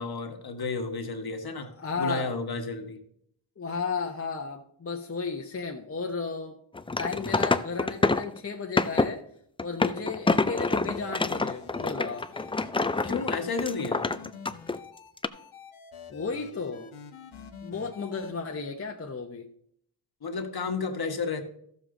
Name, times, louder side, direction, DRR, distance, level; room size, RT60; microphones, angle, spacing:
voice 1, 0.0-3.0 13.0-14.0 20.2-21.4, left 4 dB, 45° left, 6 dB, 1.4 m, -32 dB
voice 2, 1.6-2.3 3.6-6.6 7.0-9.2 9.6-12.2 16.1-16.9 17.6-19.5, left 4 dB, 30° left, 2 dB, 0.9 m, -34 dB
sound 1, 6.7-8.4 8.8-9.1 9.6-14.8 15.2-15.3, left 3 dB, 10° left, 0.3 m, -26 dB
sound 2, 10.7-18.3, left 6 dB, 75° left, 1.2 m, -47 dB
13.0 x 7.0 x 3.8 m, 0.69 s
cardioid pair, 65°, 50 cm